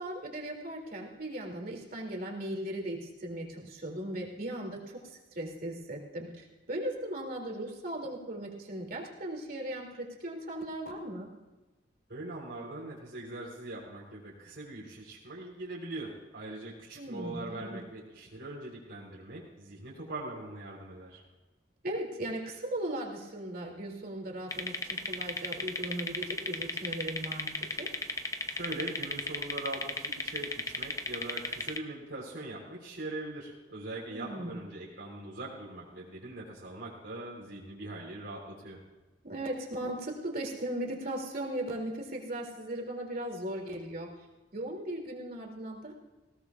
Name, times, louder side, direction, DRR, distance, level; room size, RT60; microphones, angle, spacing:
voice 1, 0.0-11.3 17.0-17.8 21.8-27.9 34.1-34.6 39.2-44.1 44.5-45.9, right 1 dB, 55° right, 0 dB, 2.7 m, -38 dB
voice 2, 12.1-21.2 28.5-38.8, right 2 dB, 80° right, -4 dB, 3.8 m, -41 dB
sound 1, 24.5-31.8, left 3 dB, 20° left, 0.7 m, -35 dB
20.0 x 17.0 x 2.4 m, 1.1 s
head